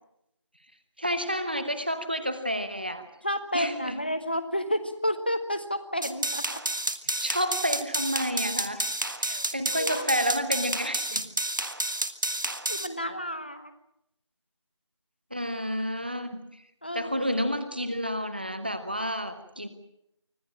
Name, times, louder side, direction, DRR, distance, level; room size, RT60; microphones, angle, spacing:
voice 1, 1.0-3.0 3.5-4.0 7.1-11.2 15.3-16.4 16.9-19.7, equal, 20° right, 10 dB, 1.0 m, -30 dB
voice 2, 3.2-6.6 9.2-9.4 9.7-10.1 12.7-13.7 16.8-17.2, equal, 20° left, 9 dB, 1.2 m, -31 dB
sound 1, 6.0-12.9, right 1 dB, 45° right, 1.5 m, -30 dB
25.5 x 16.0 x 8.7 m, 0.80 s
figure-of-eight pair, 180°, 15 cm